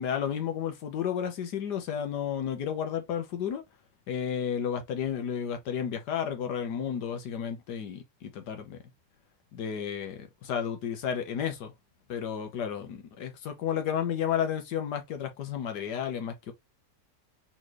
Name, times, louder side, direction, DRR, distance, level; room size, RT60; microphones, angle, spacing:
voice 1, 0.0-3.6 4.1-8.8 9.5-11.7 12.1-16.5, left 8 dB, 85° left, 1.6 m, -32 dB
4.2 x 3.8 x 3.0 m
omnidirectional pair, 1.7 m